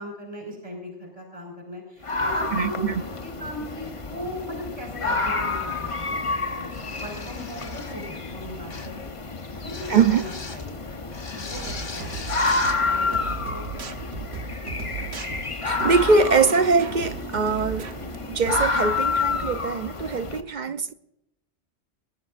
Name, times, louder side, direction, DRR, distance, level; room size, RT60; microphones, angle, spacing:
voice 1, 0.0-6.2 6.6-6.7 7.0-9.1 9.5-10.8 11.3-14.1 20.7-20.8, left 1 dB, 30° right, 5.4 m, -38 dB
sound 1, 2.0-20.4, left 3 dB, 30° left, 0.9 m, -29 dB
voice 2, 2.5-3.0 9.9-10.2 15.6-17.9 18.2-20.9, right 4 dB, 50° right, 0.6 m, -22 dB
sound 2, 6.7-8.1 8.7-9.0 9.7-10.7 11.1-12.8, left 3 dB, 85° left, 2.6 m, -39 dB
sound 3, 11.5-18.7, right 6 dB, 65° right, 1.2 m, -36 dB
22.5 x 19.5 x 2.5 m
omnidirectional pair, 1.2 m